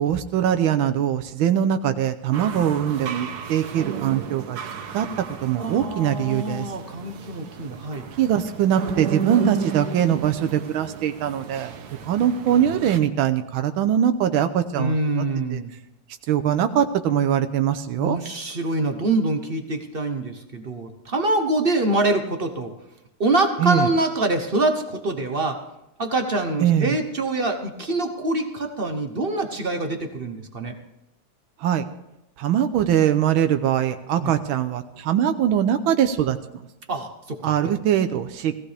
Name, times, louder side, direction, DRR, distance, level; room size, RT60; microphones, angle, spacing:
voice 1, 0.0-4.6 4.9-5.1 5.4-6.7 8.2-11.7 12.0-15.2 15.5-15.6 16.3-18.2 23.6-23.9 26.6-27.0 31.6-31.9 32.4-36.4 37.4-38.6, right 10 dB, 85° right, 8 dB, 1.5 m, -22 dB
sound 1, 2.3-13.0, right 6 dB, 55° right, 1.4 m, -33 dB
voice 2, 5.6-8.1 14.8-15.7 18.0-22.7 23.2-25.6 26.0-30.8 34.2-34.3 36.9-37.7, right 2 dB, 40° right, 6 dB, 0.9 m, -25 dB
17.5 x 15.5 x 3.4 m, 0.92 s
omnidirectional pair, 2.2 m